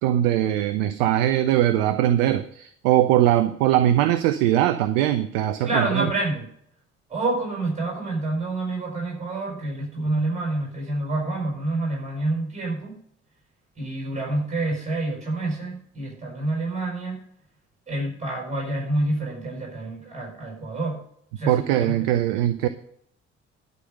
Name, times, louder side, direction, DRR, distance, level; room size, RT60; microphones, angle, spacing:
voice 1, 0.0-6.1 21.5-22.7, right 12 dB, 60° right, 12 dB, 0.6 m, -21 dB
voice 2, 5.6-6.5 7.1-12.9 13.8-17.2 17.9-21.0 21.4-22.1, right 2 dB, 20° right, -3 dB, 5.7 m, -28 dB
11.5 x 5.4 x 7.6 m, 0.66 s
figure-of-eight pair, 50°, 37 cm